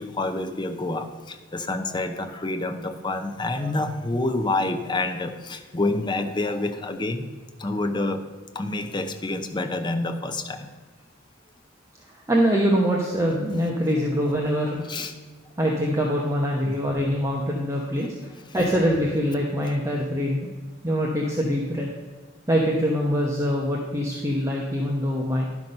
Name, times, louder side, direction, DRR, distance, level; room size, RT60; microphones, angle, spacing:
voice 1, 0.0-7.3 7.6-8.3 8.5-10.7 14.9-15.1 16.6-16.8, left 2 dB, 25° left, 6 dB, 0.7 m, -28 dB
voice 2, 12.3-14.8 15.6-18.1 18.5-20.5 20.8-21.9 22.5-25.5, equal, 15° right, -2 dB, 0.9 m, -24 dB
11.0 x 6.0 x 5.3 m, 1.4 s
head